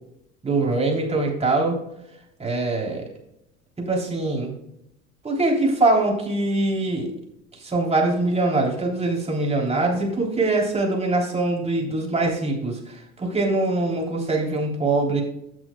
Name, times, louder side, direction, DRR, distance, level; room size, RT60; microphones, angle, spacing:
voice 1, 0.4-1.8 2.4-3.0 3.8-4.5 5.2-7.1 7.5-15.2, right 2 dB, 15° right, -1 dB, 3.4 m, -23 dB
16.0 x 6.3 x 2.3 m, 0.81 s
hypercardioid pair, 75°, 39 cm